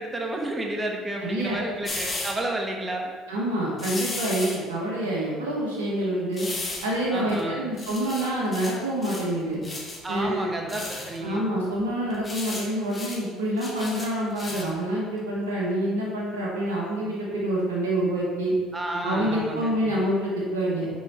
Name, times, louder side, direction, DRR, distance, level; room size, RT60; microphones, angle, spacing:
voice 1, 0.0-3.1 7.1-7.6 10.0-11.4 18.7-19.8, right 1 dB, 20° right, 1 dB, 1.2 m, -31 dB
voice 2, 1.2-1.6 3.3-6.5 6.8-9.6 10.1-10.5 11.2-18.5 19.0-20.9, right 1 dB, 90° right, -4 dB, 1.2 m, -27 dB
sound 1, 1.8-2.3 3.8-4.6 6.3-6.9 7.3-7.4 7.8-8.8 9.0-9.3 9.6-10.0 10.7-11.2 12.1-12.6 12.9-13.2 13.6-14.7 15.2-15.3, left 2 dB, 30° left, 1.7 m, -34 dB
6.2 x 4.7 x 4.3 m, 1.5 s
hypercardioid pair, 65°, 0 cm